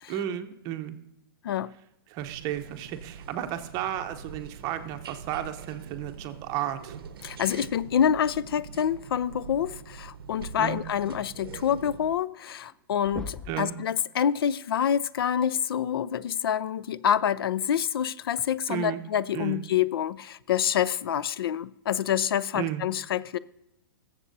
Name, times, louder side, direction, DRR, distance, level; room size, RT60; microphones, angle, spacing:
voice 1, 0.1-1.0 2.1-7.0 10.6-10.8 13.5-13.7 18.7-19.0 19.3-19.6 22.5-22.8, right 11 dB, 30° right, 0.8 m, -33 dB
sound 1, 2.2-12.1, right 6 dB, 75° right, 0.6 m, -44 dB
voice 2, 7.2-23.4, left 9 dB, 80° left, 0.4 m, -27 dB
sound 2, 12.7-12.8 13.0-13.7 15.4-15.5 17.3-17.5 18.4-18.5, left 2 dB, 5° left, 0.5 m, -39 dB
20.0 x 7.4 x 2.7 m
hypercardioid pair, 145°, 12 cm